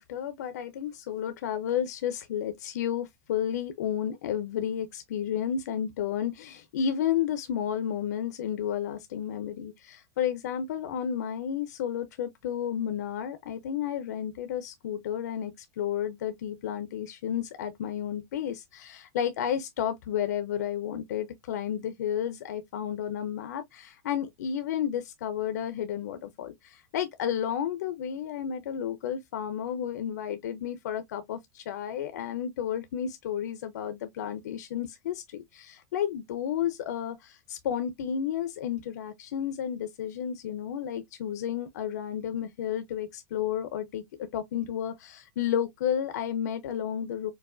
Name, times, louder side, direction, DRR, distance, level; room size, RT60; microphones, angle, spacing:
voice 1, 0.0-47.3, left 9 dB, 75° left, 0.6 m, -32 dB
4.6 x 2.3 x 2.4 m
supercardioid pair, 165°, 9 cm